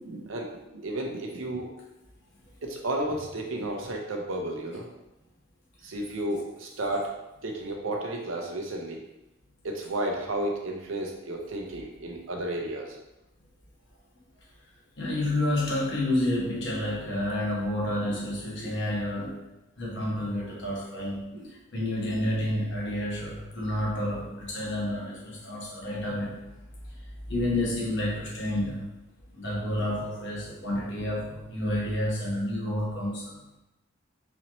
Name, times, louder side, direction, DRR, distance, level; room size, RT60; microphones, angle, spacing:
voice 1, 0.0-1.7 2.6-4.9 5.8-7.1 7.4-9.0 9.6-13.0 18.6-18.7 21.3-21.5, right 1 dB, 70° right, 1 dB, 0.6 m, -32 dB
voice 2, 15.0-19.4 19.8-26.4 26.8-28.8 29.3-33.4, left 1 dB, 60° left, -4 dB, 1.1 m, -30 dB
4.1 x 2.8 x 3.0 m, 0.96 s
head